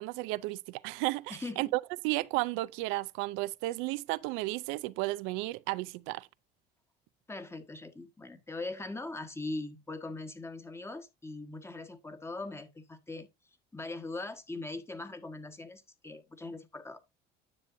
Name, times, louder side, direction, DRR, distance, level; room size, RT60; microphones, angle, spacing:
voice 1, 0.0-6.3, right 20 dB, 80° right, 0.4 m, -33 dB
voice 2, 1.3-1.7 7.3-13.3 13.7-17.0, left 2 dB, 15° left, 1.4 m, -41 dB
9.9 x 6.9 x 2.6 m
supercardioid pair, 90°, 20 cm